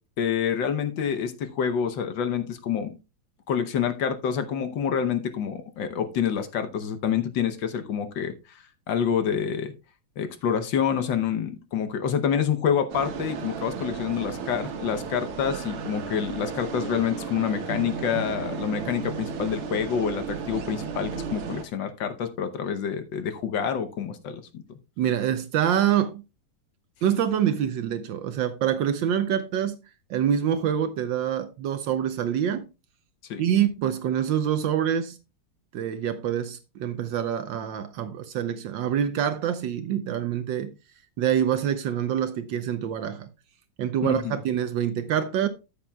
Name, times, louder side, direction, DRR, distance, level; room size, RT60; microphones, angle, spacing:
voice 1, 0.2-2.9 3.5-9.7 10.2-24.4 33.3-33.4 44.0-44.4, left 8 dB, 65° left, 1.4 m, -27 dB
sound 1, 12.9-21.6, right 6 dB, 85° right, 2.2 m, -34 dB
voice 2, 25.0-26.2 27.0-29.8 30.1-32.7 33.4-35.2 35.7-40.7 41.2-43.3 43.8-45.5, right 9 dB, 70° right, 1.2 m, -26 dB
13.5 x 7.2 x 2.2 m
omnidirectional pair, 2.4 m